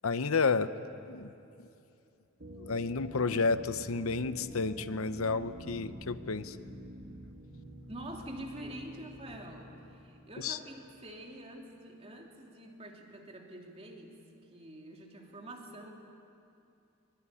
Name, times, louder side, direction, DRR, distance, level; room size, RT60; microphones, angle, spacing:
voice 1, 0.0-0.7 1.1-1.3 2.7-6.6 10.4-10.6, left 4 dB, 90° left, 12 dB, 0.9 m, -31 dB
sound 1, 2.4-11.1, right 1 dB, 50° right, 2.8 m, -48 dB
voice 2, 7.9-14.2 14.5-15.9, right 1 dB, 30° right, 1 dB, 3.0 m, -46 dB
23.5 x 23.5 x 9.9 m, 2.7 s
head